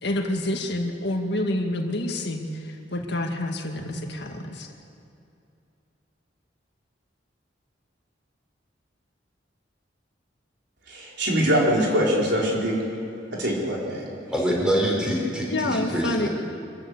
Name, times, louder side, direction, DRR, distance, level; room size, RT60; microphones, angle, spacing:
voice 1, 0.0-4.7 15.5-16.3, left 1 dB, 65° left, 3 dB, 2.0 m, -28 dB
voice 2, 10.9-12.8 13.3-14.1, equal, 65° right, -3 dB, 4.8 m, -23 dB
voice 3, 14.3-16.3, equal, 5° right, -3 dB, 4.6 m, -25 dB
25.0 x 14.5 x 8.4 m, 2.7 s
head